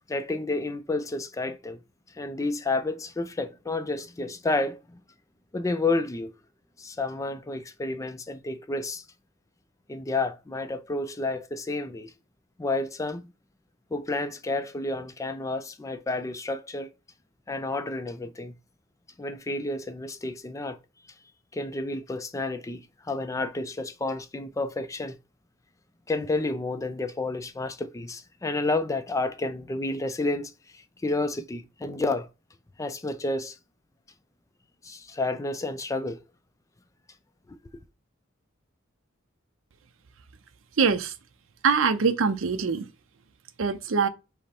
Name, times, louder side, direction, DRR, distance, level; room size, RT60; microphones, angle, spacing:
voice 1, 0.1-1.8 2.2-5.0 5.5-6.3 6.8-9.0 9.9-12.1 12.6-13.3 13.9-16.9 17.5-18.5 19.2-20.8 21.5-25.2 26.1-32.3 32.8-33.6 34.8-36.2 37.5-37.6, left 2 dB, 15° left, 0.3 m, -30 dB
voice 2, 40.8-41.1 41.6-42.9 43.6-44.1, right 5 dB, 70° right, 0.5 m, -23 dB
5.1 x 2.1 x 4.3 m
head